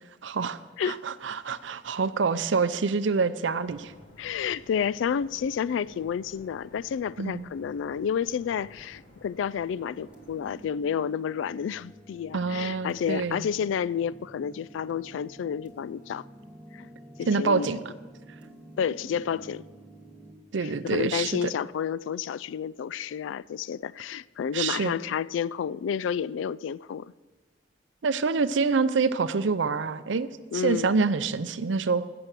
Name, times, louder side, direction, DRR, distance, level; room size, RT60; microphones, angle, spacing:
voice 1, 0.2-0.6 0.9-3.9 7.2-7.4 12.3-13.5 17.3-17.8 20.5-21.5 24.5-25.0 28.0-32.0, right 4 dB, 75° right, 0.6 m, -26 dB
sound 1, 3.6-10.7, left 1 dB, 50° left, 2.3 m, -53 dB
voice 2, 4.2-16.2 16.7-16.9 17.2-17.7 18.8-19.7 20.6-27.1 30.5-30.9, left 7 dB, 80° left, 0.3 m, -30 dB
sound 2, 9.7-20.3, right 1 dB, 5° right, 1.6 m, -49 dB
15.5 x 6.9 x 6.0 m
head